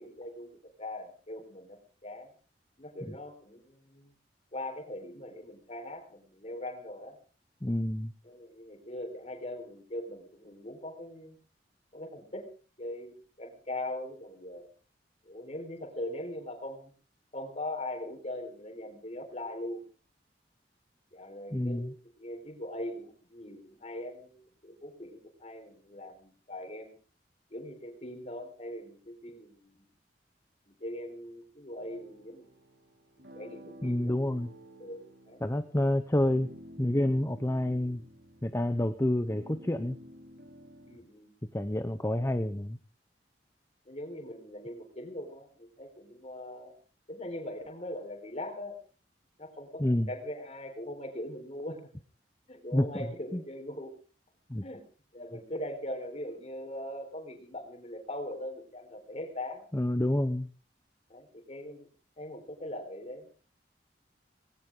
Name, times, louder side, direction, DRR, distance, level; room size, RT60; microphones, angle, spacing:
voice 1, 0.0-2.3 2.8-4.1 4.5-7.2 8.2-11.4 11.9-12.5 12.8-14.7 15.3-16.9 17.3-19.8 21.1-21.9 22.2-24.4 24.6-27.0 27.5-29.9 30.6-32.5 33.2-34.2 34.8-35.4 40.8-41.3 43.9-46.7 47.1-48.8 49.4-51.8 52.5-53.9 54.6-54.8 55.1-59.6 61.1-61.9 62.2-63.3, left 1 dB, 40° left, 4 dB, 4.2 m, -41 dB
voice 2, 7.6-8.1 21.5-21.9 33.8-34.5 35.4-36.5 36.8-38.0 38.4-40.0 41.5-42.8 49.8-50.1 52.7-52.8 53.3-53.4 54.5-54.6 59.7-60.5, left 1 dB, 15° left, 9 dB, 0.7 m, -28 dB
sound 1, 31.8-41.0, equal, 80° right, 4.2 m, -52 dB
19.0 x 17.5 x 3.7 m, 0.39 s
head